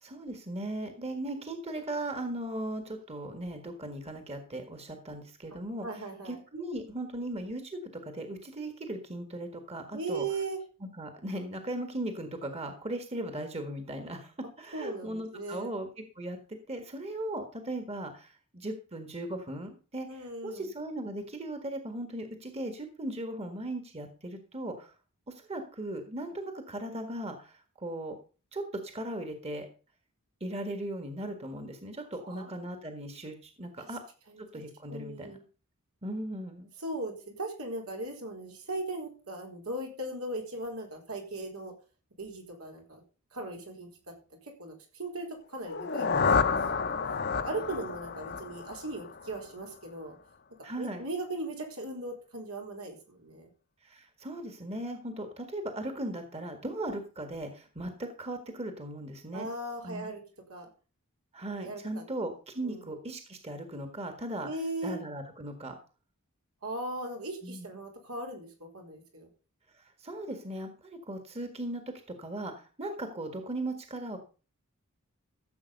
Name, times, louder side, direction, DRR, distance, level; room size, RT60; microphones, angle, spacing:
voice 1, 0.0-10.2 10.8-15.9 16.1-24.9 25.3-28.2 28.5-29.7 30.4-34.0 34.4-35.4 36.0-36.7 50.6-51.0 53.8-59.5 59.8-60.1 61.3-64.5 64.8-65.8 67.4-67.7 69.7-71.8 72.1-74.2, right 1 dB, 30° right, 6 dB, 1.7 m, -38 dB
voice 2, 5.8-6.4 9.9-10.6 14.7-15.7 20.1-20.7 32.2-32.5 33.8-33.9 34.3-34.4 34.9-35.4 36.8-41.7 42.2-43.0 43.3-43.9 44.4-46.1 46.4-47.0 47.4-50.2 50.8-53.5 59.3-60.2 60.5-60.7 61.6-62.0 62.6-62.9 64.4-65.0 66.6-69.3, right 2 dB, 80° right, 1 dB, 4.5 m, -38 dB
sound 1, 45.6-49.5, left 5 dB, 50° left, 1.0 m, -30 dB
15.0 x 7.6 x 5.4 m, 0.35 s
head